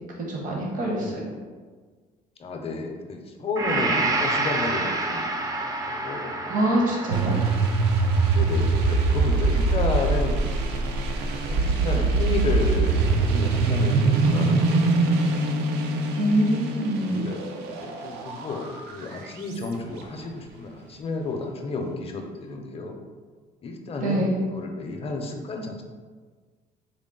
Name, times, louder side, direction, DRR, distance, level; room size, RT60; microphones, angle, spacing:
voice 1, 0.3-1.1 6.4-7.3 16.2-17.2 24.0-24.4, right 1 dB, 50° right, -2 dB, 0.8 m, -24 dB
voice 2, 0.8-1.2 2.4-6.3 7.1-7.2 8.3-11.0 11.5-15.5 17.1-23.0 23.6-25.8, left 3 dB, 35° left, 4 dB, 0.5 m, -32 dB
Gong, 3.6-11.6, right 2 dB, 20° right, 0.4 m, -30 dB
sound 1, 7.1-19.5, right 3 dB, 85° right, 0.4 m, -23 dB
3.7 x 2.1 x 3.7 m, 1.5 s
cardioid pair, 110°, 17 cm